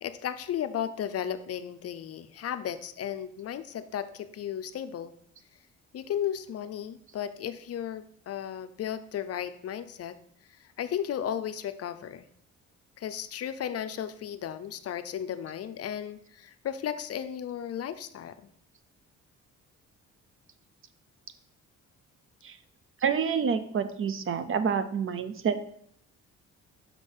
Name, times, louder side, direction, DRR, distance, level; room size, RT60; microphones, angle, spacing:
voice 1, 0.0-5.1 5.9-10.2 10.6-12.3 13.0-18.5, left 9 dB, 55° left, 11 dB, 0.5 m, -35 dB
voice 2, 23.0-25.6, right 6 dB, 45° right, 11 dB, 0.6 m, -28 dB
5.9 x 3.8 x 5.3 m, 0.68 s
cardioid pair, 90°, 30 cm